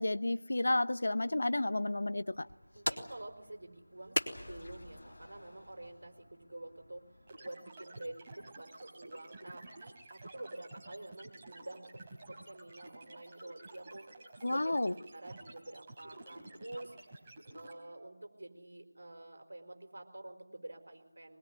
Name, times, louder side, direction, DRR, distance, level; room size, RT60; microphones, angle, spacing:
voice 1, 0.0-2.5 14.4-14.9, left 2 dB, 60° left, 0.9 m, -31 dB
sound 1, 2.3-7.4, left 1 dB, 75° left, 3.6 m, -42 dB
voice 2, 2.7-7.1 7.4-12.0 12.3-14.1 14.4-17.3 17.5-21.4, right 1 dB, 60° right, 4.5 m, -48 dB
sound 2, 4.3-6.3, left 1 dB, 40° left, 5.4 m, -54 dB
sound 3, 7.3-17.7, right 2 dB, 20° right, 4.2 m, -52 dB
23.0 x 21.5 x 9.7 m
figure-of-eight pair, 165°, 0 cm